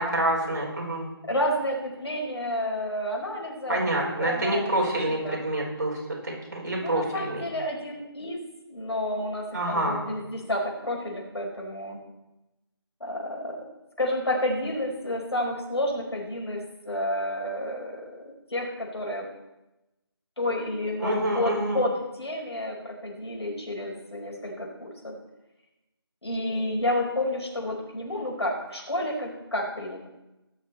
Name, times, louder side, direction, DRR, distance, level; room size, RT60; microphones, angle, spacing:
voice 1, 0.0-1.1 3.7-7.4 9.5-10.0 21.0-21.8, right 1 dB, 45° right, -3 dB, 4.6 m, -27 dB
voice 2, 1.2-4.7 5.1-5.4 6.8-12.0 13.0-13.6 14.0-19.3 20.4-25.1 26.2-30.1, left 1 dB, 90° left, -1 dB, 4.9 m, -30 dB
20.5 x 7.0 x 4.3 m, 0.97 s
figure-of-eight pair, 175°, 13 cm